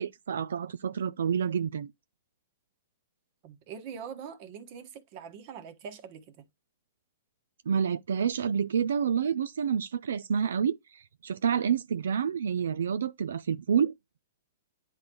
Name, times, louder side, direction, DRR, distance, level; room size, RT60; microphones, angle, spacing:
voice 1, 0.0-1.9 7.7-13.9, right 7 dB, 85° right, 0.4 m, -28 dB
voice 2, 3.4-6.4, right 7 dB, 40° right, 1.3 m, -43 dB
9.7 x 3.8 x 2.9 m
hypercardioid pair, 145°, 0 cm